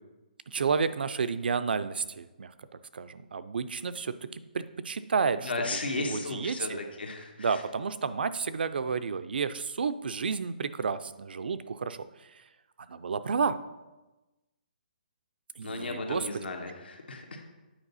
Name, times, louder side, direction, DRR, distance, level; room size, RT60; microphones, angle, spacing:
voice 1, 0.5-2.5 2.9-6.8 7.4-12.0 12.9-13.6 15.6-16.5, right 5 dB, 75° right, 12 dB, 0.5 m, -31 dB
voice 2, 5.4-7.5 15.6-17.5, left 3 dB, 80° left, 2 dB, 1.5 m, -35 dB
8.9 x 4.7 x 4.1 m, 1.1 s
hypercardioid pair, 160°, 5 cm